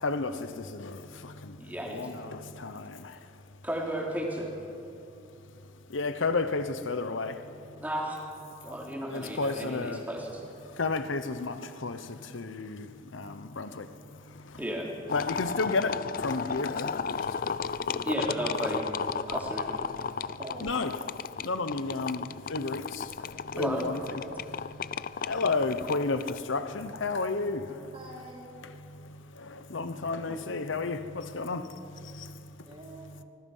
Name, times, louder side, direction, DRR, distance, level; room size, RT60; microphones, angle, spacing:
voice 1, 0.0-3.3 5.9-7.8 9.1-10.1 10.7-14.6 15.1-17.8 20.6-20.9 21.4-24.0 24.3-27.6 28.6-32.7 33.1-33.2, left 3 dB, 75° left, 0.9 m, -33 dB
voice 2, 1.6-2.1 3.6-4.5 7.8-8.3 8.6-10.4 14.6-14.9 17.9-18.9 19.3-19.8 23.6-23.8 30.3-30.4, right 1 dB, 10° right, 3.4 m, -34 dB
sound 1, 15.1-26.4, left 6 dB, 45° left, 0.4 m, -34 dB
voice 3, 20.4-20.9 27.9-28.5 32.7-33.2, right 1 dB, 25° right, 3.8 m, -45 dB
24.5 x 20.0 x 5.6 m
head